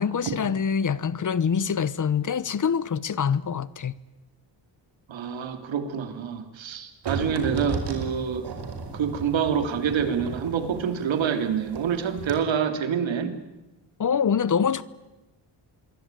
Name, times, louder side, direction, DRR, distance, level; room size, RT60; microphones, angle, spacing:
voice 1, 0.0-3.9 14.0-14.8, left 7 dB, 40° left, 1.0 m, -25 dB
voice 2, 5.1-8.5 8.9-13.4, right 7 dB, 75° right, 3.2 m, -27 dB
sound 1, 7.0-11.9 12.2-12.3, right 5 dB, 60° right, 5.4 m, -34 dB
26.5 x 22.5 x 9.2 m
cardioid pair, 115°, 46 cm